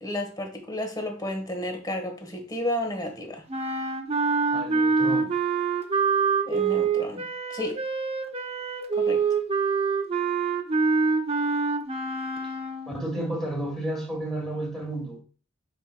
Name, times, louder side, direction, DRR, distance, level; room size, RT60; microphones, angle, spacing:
voice 1, 0.0-3.4 6.5-7.8 8.9-9.2, left 1 dB, 20° left, 1.3 m, -32 dB
sound 1, 3.5-13.0, right 4 dB, 30° right, 0.7 m, -25 dB
voice 2, 4.5-5.3 12.9-15.2, right 1 dB, ahead, 2.1 m, -32 dB
9.0 x 5.0 x 2.2 m
head